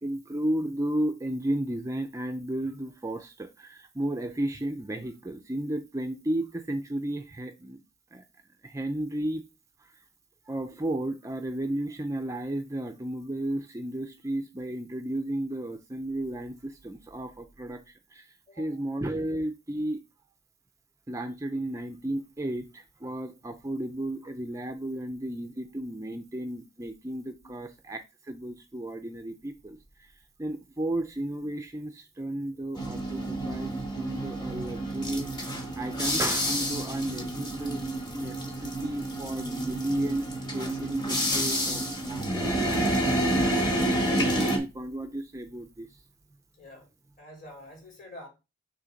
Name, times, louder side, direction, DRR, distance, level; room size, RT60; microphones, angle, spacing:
voice 1, 0.0-7.8 8.1-8.2 8.6-9.4 9.8-10.0 10.5-20.0 21.1-35.5 35.8-42.9 44.1-46.0, right 1 dB, 15° right, 0.4 m, -33 dB
voice 2, 18.5-18.8 27.4-27.5 46.6-46.9 47.2-48.3, left 1 dB, 40° left, 3.4 m, -47 dB
sound 1, 32.7-44.6, right 1 dB, 20° left, 1.2 m, -29 dB
6.4 x 3.1 x 5.1 m
head